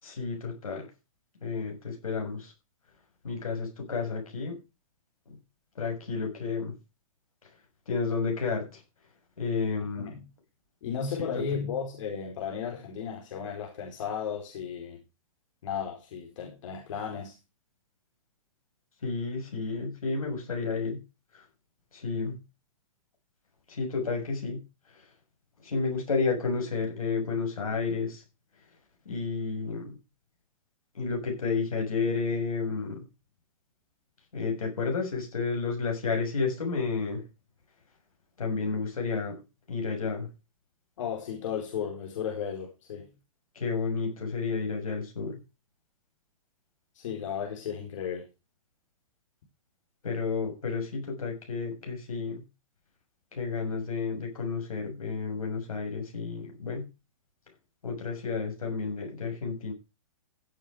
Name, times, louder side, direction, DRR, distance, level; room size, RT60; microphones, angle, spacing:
voice 1, 0.0-0.9 1.4-2.5 3.2-4.6 5.3-5.4 5.8-6.7 7.9-8.8 9.4-10.1 19.0-21.0 21.3-21.4 21.9-22.4 23.7-24.6 25.6-28.2 29.1-30.0 31.0-33.1 34.3-37.2 38.4-39.4 39.7-40.3 43.6-45.4 50.0-52.4 53.3-56.9 57.8-59.7, left 4 dB, 85° left, 6.8 m, -31 dB
voice 2, 10.0-10.3 10.8-15.0 15.6-17.3 41.0-43.1 46.9-48.3, left 7 dB, 65° left, 4.5 m, -34 dB
15.5 x 7.6 x 5.0 m
hypercardioid pair, 130°, 18 cm